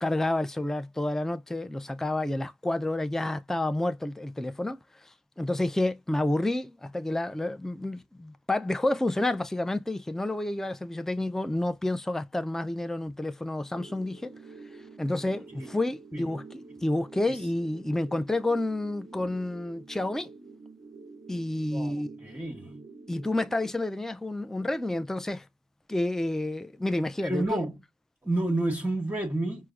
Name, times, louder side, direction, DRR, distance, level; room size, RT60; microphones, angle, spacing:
voice 1, 0.0-14.3 15.0-20.3 21.3-22.2 23.1-25.5 25.9-27.6, left 1 dB, 5° left, 0.4 m, -29 dB
sound 1, 13.7-23.7, right 4 dB, 40° right, 0.6 m, -48 dB
voice 2, 21.7-22.8 27.2-27.7 28.2-29.7, right 1 dB, 15° right, 1.0 m, -30 dB
4.5 x 2.1 x 2.4 m
cardioid pair, 50°, 15 cm